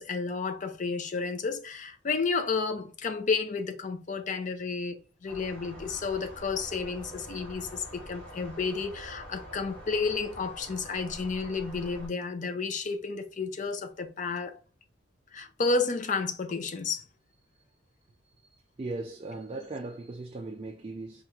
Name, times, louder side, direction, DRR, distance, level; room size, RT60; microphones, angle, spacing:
voice 1, 0.0-14.6 15.3-17.1, left 4 dB, 40° left, 0.5 m, -31 dB
sound 1, 5.3-12.1, equal, 10° left, 1.3 m, -46 dB
voice 2, 18.5-21.2, right 2 dB, 30° right, 0.3 m, -38 dB
4.6 x 2.4 x 2.8 m
head